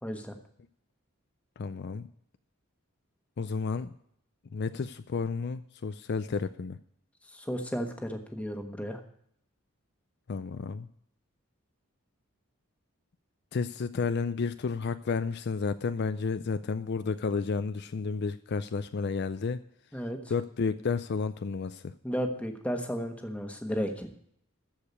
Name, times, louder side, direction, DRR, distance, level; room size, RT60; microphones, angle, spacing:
voice 1, 0.0-0.3 7.3-9.0 19.9-20.2 22.0-24.1, equal, 5° left, 4 dB, 1.2 m, -33 dB
voice 2, 1.6-2.1 3.4-3.9 4.5-6.8 10.3-10.9 13.5-19.6 20.3-21.9, left 4 dB, 50° left, 11 dB, 0.4 m, -31 dB
13.5 x 5.0 x 8.2 m, 0.69 s
head